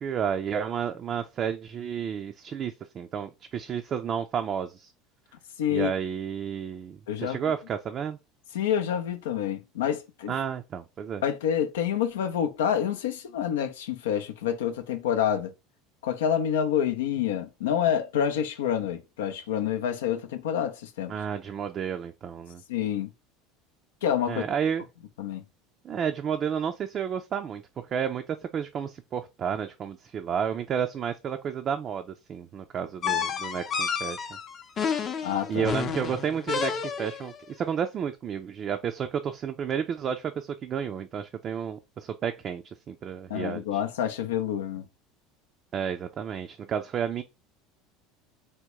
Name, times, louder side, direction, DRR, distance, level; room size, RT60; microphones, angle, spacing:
voice 1, 0.0-4.9 5.7-8.2 10.3-11.2 21.1-22.6 24.3-24.8 25.8-34.3 35.5-43.8 45.7-47.2, right 8 dB, 40° right, 0.4 m, -31 dB
voice 2, 5.6-5.9 7.1-7.4 8.5-10.3 11.2-15.5 16.0-21.1 22.7-23.1 24.0-24.4 25.2-25.4 35.2-35.6 43.3-44.9, left 9 dB, 85° left, 0.5 m, -27 dB
sound 1, 33.0-37.3, left 6 dB, 40° left, 0.6 m, -30 dB
3.5 x 2.1 x 2.9 m
hypercardioid pair, 90°, 0 cm